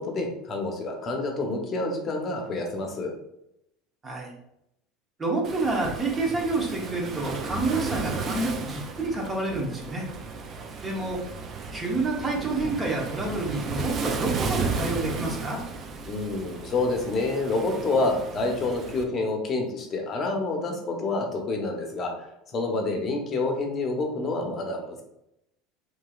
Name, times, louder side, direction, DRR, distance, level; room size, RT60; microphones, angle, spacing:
voice 1, 0.0-3.1 16.1-22.1 22.5-25.0, left 2 dB, 40° left, 2 dB, 0.8 m, -28 dB
voice 2, 5.2-10.1 10.8-11.2 11.7-15.6, right 2 dB, 25° right, -1 dB, 0.9 m, -28 dB
Waves surf, 5.4-19.0, right 4 dB, 40° right, 0.4 m, -34 dB
3.0 x 2.6 x 2.4 m, 0.80 s
supercardioid pair, 100°, 0 cm